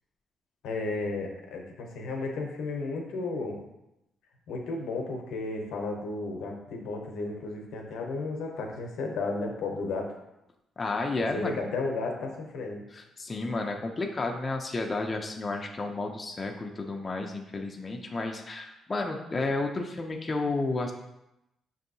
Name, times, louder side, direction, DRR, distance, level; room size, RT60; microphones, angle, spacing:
voice 1, 0.6-3.6 4.5-10.1 11.2-12.8, left 3 dB, 85° left, 2 dB, 0.7 m, -33 dB
voice 2, 10.8-11.6 12.9-20.9, left 3 dB, 30° left, 2 dB, 0.4 m, -32 dB
5.3 x 2.7 x 2.6 m, 0.89 s
cardioid pair, 90°, 0 cm